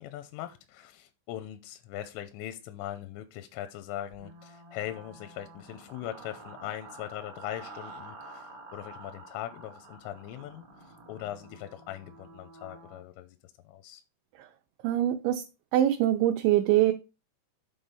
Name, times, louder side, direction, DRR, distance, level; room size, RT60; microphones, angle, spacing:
voice 1, 0.0-13.4 13.7-14.0, left 12 dB, 85° left, 3.2 m, -40 dB
sound 1, 4.1-13.0, right 2 dB, 65° right, 1.6 m, -49 dB
voice 2, 14.8-15.4 15.7-16.9, right 12 dB, 80° right, 2.7 m, -23 dB
8.0 x 3.7 x 5.4 m
omnidirectional pair, 5.6 m